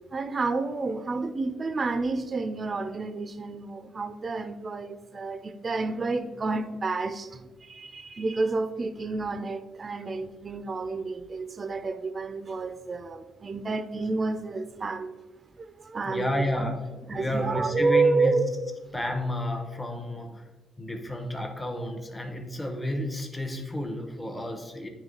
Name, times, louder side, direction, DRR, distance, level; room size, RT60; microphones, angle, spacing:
voice 1, 0.1-15.1 15.6-16.7 17.1-18.5, right 3 dB, 35° right, 10 dB, 0.4 m, -30 dB
voice 2, 16.0-18.4 18.9-20.5 20.8-24.9, left 1 dB, 15° left, 4 dB, 0.8 m, -31 dB
8.9 x 3.2 x 3.7 m, 1.3 s
cardioid pair, 90°, 0 cm